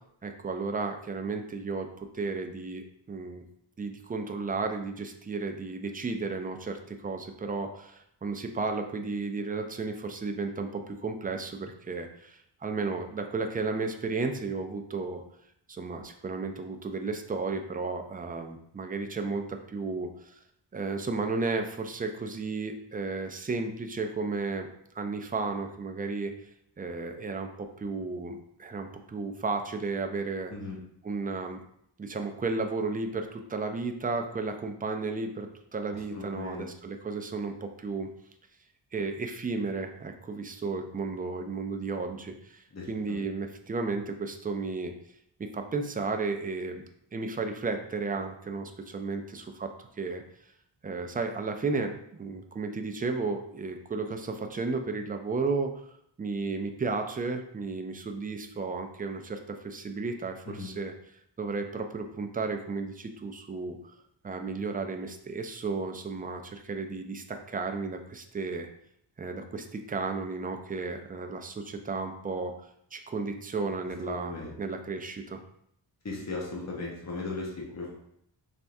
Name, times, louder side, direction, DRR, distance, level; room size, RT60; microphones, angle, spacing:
voice 1, 0.2-3.4 3.8-15.2 15.7-20.4 20.7-24.7 25.0-26.3 26.8-30.5 31.0-31.6 32.0-35.5 35.7-38.1 38.9-44.9 45.5-46.8 47.1-50.2 50.8-55.9 56.2-60.9 61.4-63.8 64.2-68.7 69.2-75.4, right 4 dB, 20° right, 5 dB, 0.3 m, -33 dB
voice 2, 35.9-36.7 42.7-43.2 60.5-60.7 74.0-74.5 76.0-78.0, left 3 dB, 35° left, -3 dB, 1.0 m, -37 dB
4.3 x 3.4 x 2.6 m, 0.72 s
wide cardioid pair, 125°, 46 cm